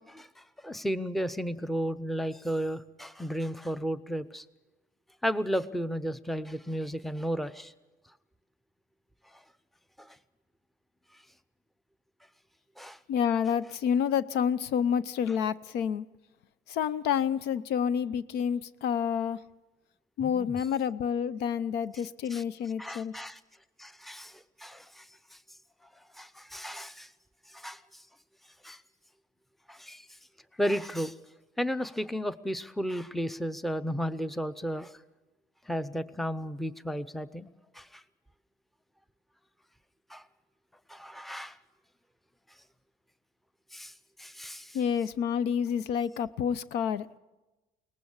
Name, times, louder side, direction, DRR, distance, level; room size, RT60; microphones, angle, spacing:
voice 1, 0.1-4.4 5.2-7.7 10.0-10.2 12.8-13.0 20.2-20.5 22.3-22.4 22.8-23.4 23.8-25.1 26.1-27.1 27.5-28.0 28.6-28.8 29.7-30.1 30.6-31.2 31.6-35.0 35.7-38.0 40.1-40.2 40.9-41.6 43.7-43.9 44.2-44.8, equal, ahead, 0.7 m, -34 dB
voice 2, 13.1-16.1 16.7-19.4 20.2-23.1 44.7-47.1, left 8 dB, 80° left, 0.7 m, -29 dB
22.5 x 19.0 x 7.2 m
cardioid pair, 110°, 17 cm